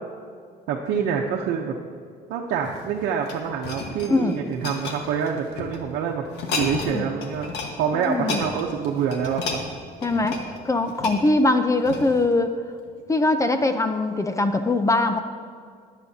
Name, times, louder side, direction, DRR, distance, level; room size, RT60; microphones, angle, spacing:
voice 1, 0.7-1.8 2.3-6.2 6.5-9.6, right 7 dB, 85° right, -1 dB, 0.9 m, -26 dB
sound 1, 2.5-5.8 6.3-7.0 7.2-7.7 8.0-12.3 12.9-13.0, left 4 dB, 85° left, 1.5 m, -32 dB
voice 2, 8.0-8.4 10.0-10.3 10.6-12.5 13.1-15.2, left 2 dB, 20° left, 8 dB, 0.6 m, -22 dB
20.5 x 8.3 x 2.8 m, 2.1 s
cardioid pair, 110°, 17 cm